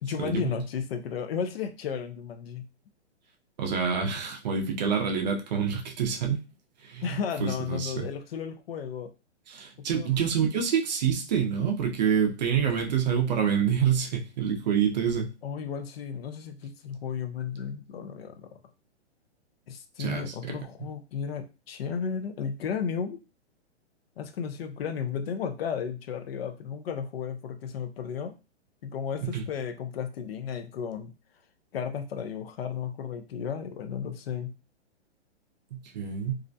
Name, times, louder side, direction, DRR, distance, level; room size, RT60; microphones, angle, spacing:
voice 1, 0.0-2.7 7.0-9.1 9.9-10.1 15.4-18.6 19.7-23.2 24.2-28.4 28.8-31.1 31.7-34.5, left 7 dB, 60° left, 7 dB, 0.5 m, -34 dB
voice 2, 3.6-6.4 6.8-7.0 7.4-8.1 9.5-15.3 20.0-20.6 29.2-29.4 35.7-36.4, right 7 dB, 40° right, 2 dB, 0.5 m, -27 dB
2.4 x 2.1 x 2.5 m, 0.30 s
hypercardioid pair, 145°, 34 cm